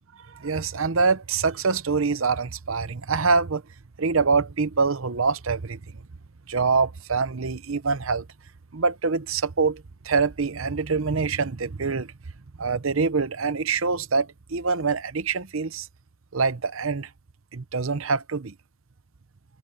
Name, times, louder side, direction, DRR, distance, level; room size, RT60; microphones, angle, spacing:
voice 1, 0.4-3.6 4.0-5.8 6.5-8.2 8.7-12.1 12.6-15.9 16.3-17.1 17.5-18.5, right 4 dB, 65° right, 0.8 m, -25 dB
head